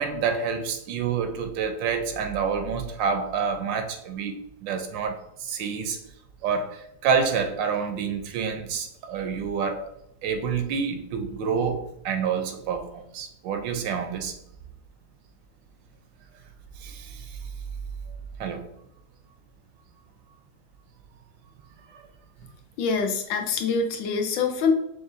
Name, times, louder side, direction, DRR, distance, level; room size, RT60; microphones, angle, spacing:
voice 1, 0.0-4.3 4.6-5.2 5.4-6.0 6.4-6.8 7.0-9.8 10.2-14.3 16.8-17.2 18.4-18.7, right 6 dB, 80° right, 7 dB, 1.3 m, -28 dB
voice 2, 22.8-24.7, left 5 dB, 85° left, 5 dB, 1.4 m, -25 dB
6.4 x 2.6 x 2.5 m, 0.79 s
omnidirectional pair, 2.0 m